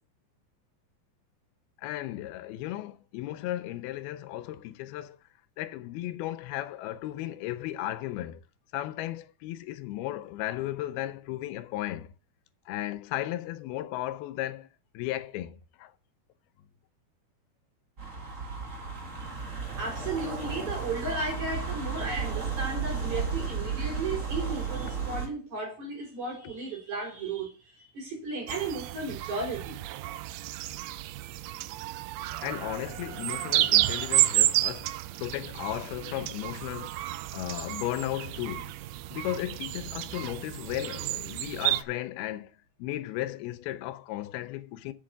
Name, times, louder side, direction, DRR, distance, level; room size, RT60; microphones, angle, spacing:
voice 1, 1.8-5.2 5.6-8.4 8.7-12.1 12.7-14.7 14.9-15.9 32.4-37.0 37.3-38.7 39.1-42.5 42.8-44.9, left 14 dB, 85° left, 2.6 m, -35 dB
sound 1, 18.0-25.3, right 5 dB, 30° right, 1.5 m, -33 dB
voice 2, 19.8-29.8, right 3 dB, 50° right, 4.8 m, -34 dB
sound 2, 28.5-41.8, right 16 dB, 85° right, 2.5 m, -31 dB
7.7 x 7.5 x 6.4 m
omnidirectional pair, 4.4 m